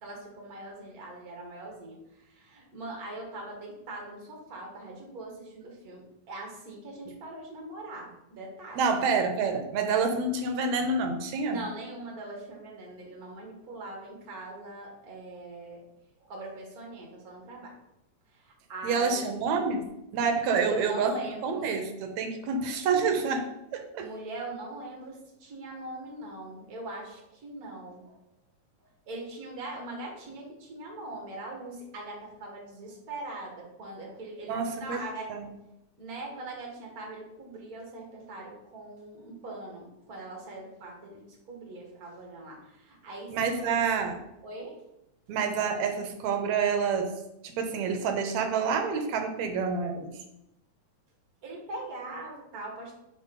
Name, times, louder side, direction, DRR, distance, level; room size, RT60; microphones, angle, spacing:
voice 1, 0.0-8.9 11.5-15.8 16.2-17.7 18.3-19.5 20.5-21.7 24.0-28.2 28.8-35.3 36.0-43.8 44.4-44.8 45.3-45.4 51.4-53.0, right 2 dB, 35° right, -1 dB, 1.7 m, -41 dB
voice 2, 8.8-11.6 18.8-19.8 20.1-21.1 21.4-23.5 23.7-24.1 34.5-35.0 35.3-35.4 43.3-44.2 45.3-47.1 47.4-50.1, right 5 dB, 75° right, 5 dB, 1.9 m, -28 dB
6.2 x 3.9 x 5.3 m, 0.87 s
omnidirectional pair, 3.5 m